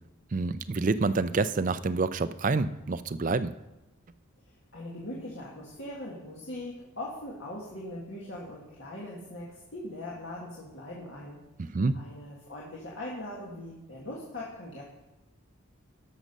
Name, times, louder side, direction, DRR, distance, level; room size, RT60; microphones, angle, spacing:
voice 1, 0.3-3.5 11.6-12.0, right 3 dB, 35° right, 12 dB, 0.4 m, -27 dB
voice 2, 4.7-14.8, left 1 dB, 60° left, -5 dB, 1.9 m, -41 dB
12.5 x 6.6 x 5.3 m, 1.0 s
head